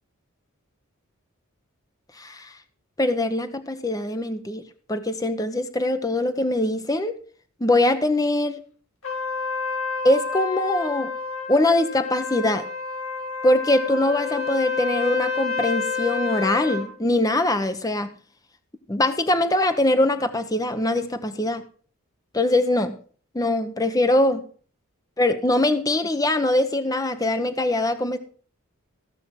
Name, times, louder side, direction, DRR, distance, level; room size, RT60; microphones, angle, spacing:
voice 1, 2.2-2.5 3.0-4.6 4.9-7.1 7.6-8.6 10.0-11.1 11.5-12.6 13.4-18.1 18.9-21.6 22.3-23.0 23.3-24.4 25.2-28.2, left 1 dB, 15° left, 9 dB, 0.8 m, -22 dB
Trumpet, 9.0-16.9, left 4 dB, 70° left, 4.1 m, -29 dB
15.0 x 6.1 x 5.7 m, 0.43 s
head